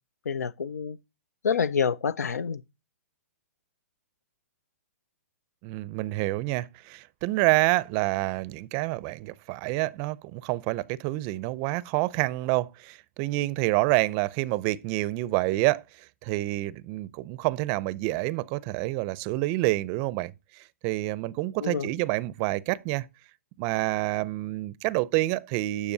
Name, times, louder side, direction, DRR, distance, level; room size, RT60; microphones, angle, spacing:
voice 1, 0.3-1.0 1.4-2.6 21.6-21.9, left 6 dB, 90° left, 0.4 m, -27 dB
voice 2, 5.6-23.1 23.6-25.9, right 19 dB, 35° right, 0.5 m, -28 dB
12.0 x 6.7 x 2.7 m
hypercardioid pair, 130°, 8 cm